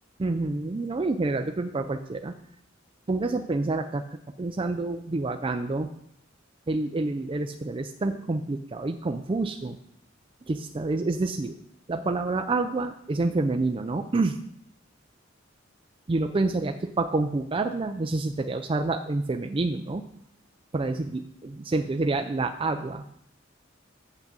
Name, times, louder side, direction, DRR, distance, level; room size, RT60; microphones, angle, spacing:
voice 1, 0.2-2.3 3.1-4.0 4.4-5.9 6.7-9.8 10.5-11.5 11.9-14.4 16.1-20.0 20.7-23.1, right 3 dB, 25° right, 6 dB, 0.4 m, -28 dB
6.7 x 6.0 x 7.2 m, 0.71 s
head